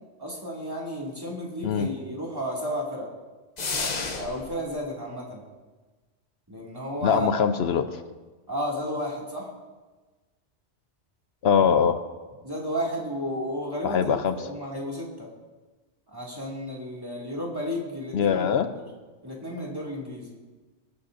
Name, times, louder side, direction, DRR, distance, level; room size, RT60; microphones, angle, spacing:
voice 1, 0.2-3.1 4.1-5.4 6.5-7.3 8.5-9.5 12.4-15.3 16.1-18.8 19.2-20.4, equal, 20° right, -4 dB, 2.3 m, -33 dB
sound 1, 3.6-4.6, left 4 dB, 40° left, 0.9 m, -30 dB
voice 2, 7.0-8.0 11.4-12.0 13.8-14.5 18.1-18.7, left 7 dB, 65° left, 10 dB, 0.8 m, -22 dB
20.5 x 8.7 x 2.6 m, 1.3 s
omnidirectional pair, 1.2 m